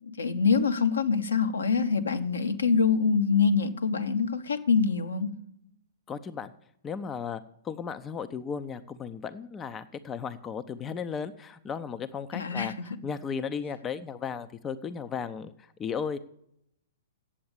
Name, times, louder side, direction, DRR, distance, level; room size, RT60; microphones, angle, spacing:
voice 1, 0.0-5.4 12.3-12.7, left 5 dB, 70° left, 7 dB, 1.0 m, -25 dB
voice 2, 6.1-6.5 6.8-16.2, left 6 dB, 20° left, 11 dB, 0.5 m, -35 dB
8.7 x 7.8 x 8.7 m, 0.75 s
figure-of-eight pair, 110°, 0 cm